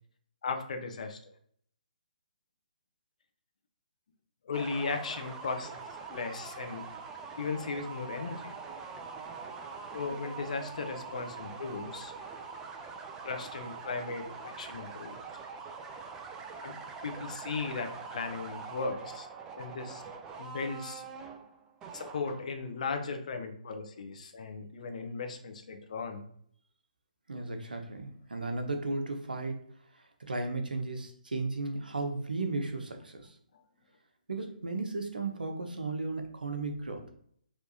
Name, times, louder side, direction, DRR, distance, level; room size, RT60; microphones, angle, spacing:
voice 1, 0.4-1.2 4.4-5.7 6.1-6.8 7.4-8.5 9.9-12.1 13.2-15.2 16.6-16.8 17.0-19.3 19.6-20.0 20.4-21.0 21.9-26.2, left 4 dB, 55° left, 6 dB, 0.8 m, -36 dB
sound 1, 4.5-22.7, right 5 dB, 15° right, 0.4 m, -44 dB
voice 2, 27.3-29.7 30.0-33.3 34.3-37.1, right 3 dB, 80° right, 4 dB, 0.9 m, -35 dB
4.7 x 3.2 x 2.8 m, 0.64 s
figure-of-eight pair, 140°, 5 cm